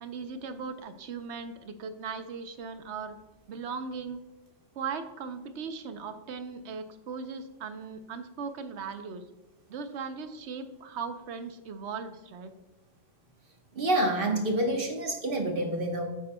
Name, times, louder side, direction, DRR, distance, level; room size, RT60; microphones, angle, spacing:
voice 1, 0.0-3.2 3.5-4.2 4.7-9.2 9.7-12.5, right 5 dB, 65° right, 9 dB, 0.9 m, -38 dB
voice 2, 13.7-16.1, right 1 dB, 50° right, 3 dB, 1.3 m, -27 dB
9.3 x 8.5 x 2.2 m, 1.1 s
omnidirectional pair, 1.3 m